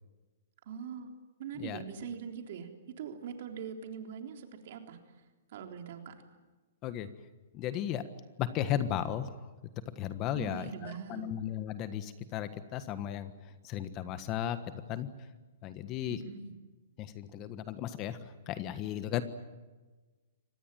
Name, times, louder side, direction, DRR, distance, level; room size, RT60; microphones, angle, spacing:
voice 1, 0.7-1.1 1.4-2.7 3.0-5.2 5.5-6.2 10.3-11.3 16.2-16.5, right 7 dB, 55° right, 4 dB, 3.7 m, -42 dB
voice 2, 7.5-8.1 8.4-9.5 9.9-14.6 14.9-15.3 15.6-16.2 17.0-19.2, left 10 dB, 30° left, 12 dB, 1.4 m, -35 dB
25.0 x 19.5 x 9.2 m, 1.2 s
hypercardioid pair, 150°, 0 cm